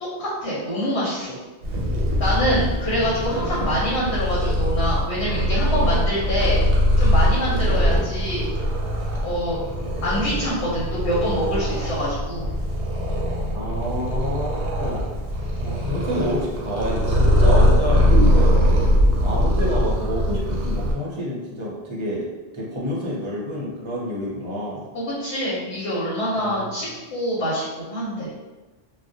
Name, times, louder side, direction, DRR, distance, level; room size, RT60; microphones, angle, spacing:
voice 1, 0.2-1.4 2.2-6.6 7.0-8.5 9.2-9.6 10.0-12.4 24.9-28.3, equal, 85° left, -9 dB, 1.1 m, -25 dB
Purr, 1.6-20.9, equal, 90° right, 0.9 m, -21 dB
voice 2, 13.5-15.1 15.6-18.6 19.2-22.3 22.5-24.8 26.4-27.0, equal, 40° right, -5 dB, 0.5 m, -28 dB
2.4 x 2.0 x 2.6 m, 1.2 s
omnidirectional pair, 1.1 m